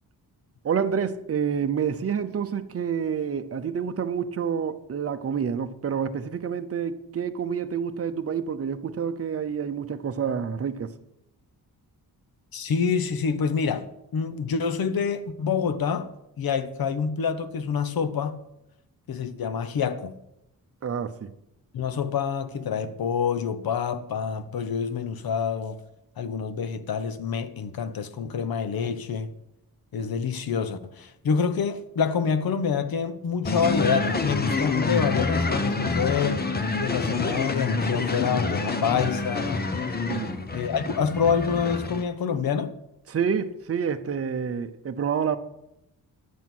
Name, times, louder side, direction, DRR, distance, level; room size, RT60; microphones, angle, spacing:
voice 1, 0.6-10.9 20.8-21.3 40.1-40.5 43.1-45.4, right 7 dB, 40° right, 0.8 m, -28 dB
voice 2, 12.5-16.1 16.4-18.4 19.1-20.2 21.7-25.8 26.2-29.3 29.9-36.4 36.8-39.7 40.5-42.7, left 6 dB, 70° left, 1.0 m, -27 dB
sound 1, 33.4-42.0, left 3 dB, 25° left, 0.9 m, -27 dB
11.5 x 9.3 x 6.1 m
wide cardioid pair, 160°, 37 cm